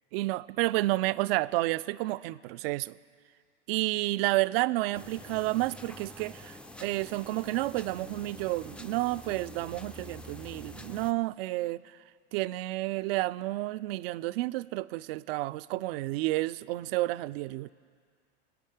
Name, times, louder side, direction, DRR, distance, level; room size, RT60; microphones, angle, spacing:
voice 1, 0.1-3.0 3.7-11.8 12.3-17.7, right 18 dB, 60° right, 16 dB, 0.4 m, -30 dB
sound 1, 4.9-11.1, left 1 dB, 5° left, 0.4 m, -47 dB
25.0 x 8.5 x 4.9 m, 2.1 s
hypercardioid pair, 95°, 33 cm